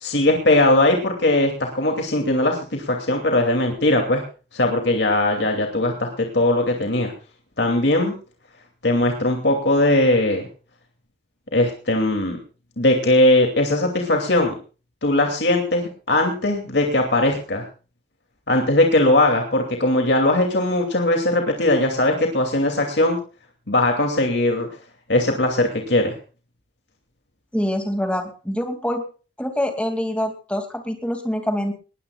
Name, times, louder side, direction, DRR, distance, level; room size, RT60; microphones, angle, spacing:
voice 1, 0.0-4.2 4.5-7.1 7.6-8.1 8.8-10.5 11.5-12.4 12.8-14.5 15.0-17.6 18.5-23.2 23.7-24.7 25.1-26.1, left 1 dB, 70° left, 2 dB, 2.6 m, -19 dB
voice 2, 27.5-29.0 29.4-31.7, equal, 5° left, 5 dB, 2.4 m, -25 dB
20.5 x 16.5 x 2.4 m, 0.35 s
head